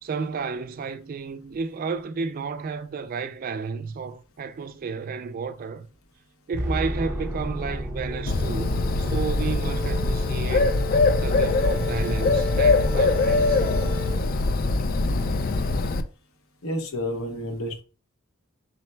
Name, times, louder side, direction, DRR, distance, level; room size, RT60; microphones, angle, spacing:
voice 1, 0.0-5.9 6.5-10.8 11.2-13.6, right 5 dB, 40° right, 0.3 m, -32 dB
sound 1, 6.5-10.0, equal, 15° right, 0.9 m, -32 dB
sound 2, 8.0-14.2, right 3 dB, 10° left, 0.7 m, -36 dB
Bird, 8.3-16.0, left 3 dB, 45° left, 0.3 m, -22 dB
voice 2, 16.6-17.8, left 1 dB, 80° left, 0.9 m, -30 dB
3.9 x 2.2 x 4.2 m
head